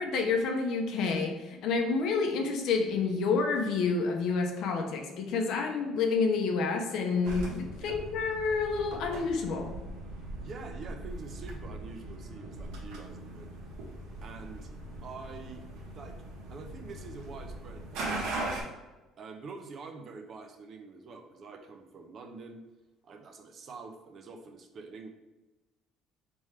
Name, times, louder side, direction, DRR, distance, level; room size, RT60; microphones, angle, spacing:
voice 1, 0.0-9.7, left 4 dB, 60° left, 3 dB, 0.6 m, -29 dB
sound 1, 7.2-18.6, right 2 dB, 85° right, 1.1 m, -40 dB
voice 2, 10.4-13.6 14.2-14.7 15.0-16.2 16.5-18.7 19.2-22.6 23.0-25.1, right 4 dB, 35° right, 5 dB, 0.5 m, -46 dB
4.4 x 3.5 x 3.2 m, 1.1 s
cardioid pair, 165°, 0 cm